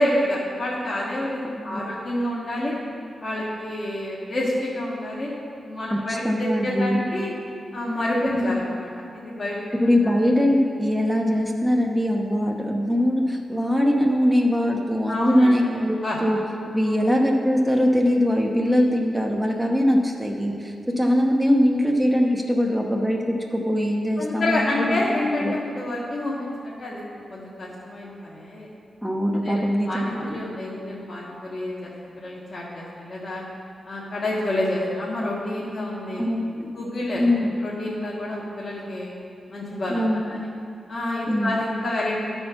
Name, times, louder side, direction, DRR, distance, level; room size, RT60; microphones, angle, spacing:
voice 1, 0.0-2.8 3.2-5.3 5.6-7.3 7.7-9.6 10.0-10.1 15.1-16.2 16.9-17.0 24.2-27.0 27.3-28.7 29.4-31.9 32.2-33.4 33.8-36.2 36.8-37.2 37.6-39.1 39.5-40.4 40.9-42.2, left 1 dB, 50° left, -7 dB, 1.6 m, -28 dB
voice 2, 1.6-1.9 5.9-7.0 8.4-8.5 9.8-16.4 16.7-25.5 29.0-30.4 36.2-36.8 37.2-37.5 39.9-40.6 41.3-41.5, equal, ahead, -1 dB, 0.9 m, -22 dB
12.0 x 4.4 x 5.9 m, 2.4 s
cardioid pair, 80°, 0 cm